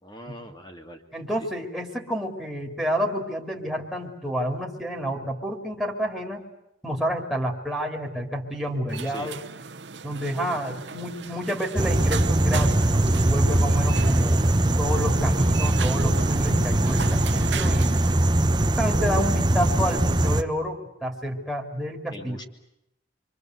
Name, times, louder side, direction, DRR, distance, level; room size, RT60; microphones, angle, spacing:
voice 1, 0.0-1.0 9.0-9.3 10.4-10.6 22.1-22.4, equal, 25° left, 5 dB, 2.8 m, -42 dB
voice 2, 1.1-6.4 6.8-9.4 10.0-14.4 14.8-18.1 18.7-22.4, equal, ahead, -1 dB, 3.3 m, -29 dB
sound 1, 8.9-18.2, right 5 dB, 65° right, 1.1 m, -37 dB
sound 2, 11.8-20.4, right 1 dB, 25° right, 1.0 m, -21 dB
28.5 x 24.5 x 8.1 m, 0.83 s
head